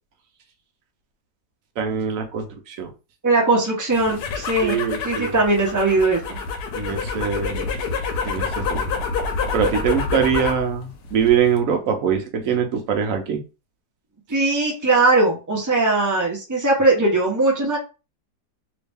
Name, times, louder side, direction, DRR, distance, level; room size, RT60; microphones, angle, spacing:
voice 1, 1.8-2.9 4.6-5.3 6.7-7.7 8.2-8.9 9.5-13.4, right 7 dB, 60° right, 4 dB, 1.0 m, -23 dB
voice 2, 3.2-6.4 14.3-17.8, right 2 dB, 15° right, -2 dB, 0.9 m, -20 dB
sound 1, 3.9-10.7 11.0-11.6, left 5 dB, 75° left, 1.3 m, -27 dB
3.1 x 2.7 x 3.4 m, 0.31 s
omnidirectional pair, 1.8 m